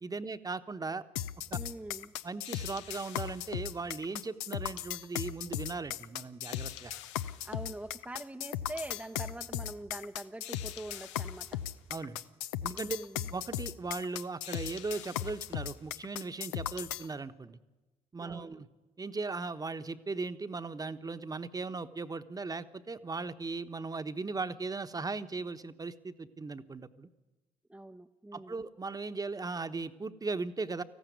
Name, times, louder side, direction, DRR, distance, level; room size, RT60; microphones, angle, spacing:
voice 1, 0.0-1.0 1.5-1.6 2.2-6.9 11.9-12.2 12.6-13.0 13.3-17.6 18.1-18.7 19.0-27.1 28.3-30.8, right 3 dB, 25° right, 11 dB, 1.1 m, -38 dB
sound 1, 1.2-17.1, left 11 dB, 90° left, 0.6 m, -37 dB
voice 2, 1.6-2.1 7.4-11.6 12.7-13.3 18.2-18.6 27.7-28.6, right 1 dB, 10° right, 4 dB, 0.7 m, -44 dB
19.0 x 14.5 x 9.4 m, 1.1 s
hypercardioid pair, 60°, 15 cm